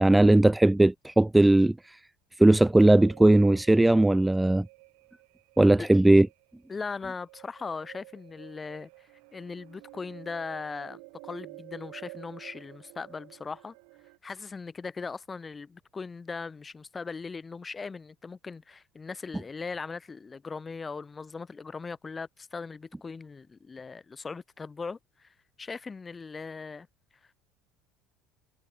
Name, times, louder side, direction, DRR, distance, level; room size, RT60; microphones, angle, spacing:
voice 1, 0.0-2.0 2.4-4.7 5.6-6.3, right 1 dB, 10° right, 1.1 m, -19 dB
sound 1, 2.7-14.2, right 40 dB or more, 65° right, 5.6 m, -51 dB
voice 2, 6.7-13.7 14.2-26.9, left 4 dB, 25° left, 4.0 m, -39 dB
figure-of-eight pair, 65°, 0 cm